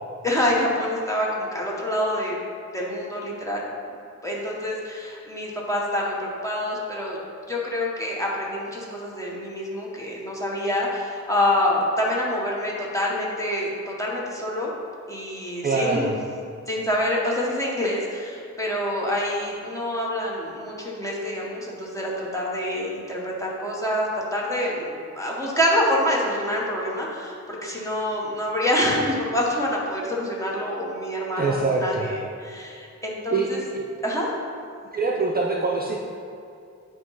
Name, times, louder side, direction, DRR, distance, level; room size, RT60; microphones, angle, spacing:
voice 1, 0.2-2.4 2.7-3.6 4.2-7.2 7.5-14.7 15.1-16.2 16.7-27.4 27.6-33.6 34.0-34.3, left 1 dB, 10° left, -4 dB, 1.0 m, -26 dB
voice 2, 15.6-16.1 31.4-32.1 33.3-33.5 33.7-33.8 34.9-36.0, right 3 dB, 30° right, -2 dB, 0.4 m, -24 dB
8.6 x 3.0 x 5.5 m, 2.5 s
wide cardioid pair, 170°, 29 cm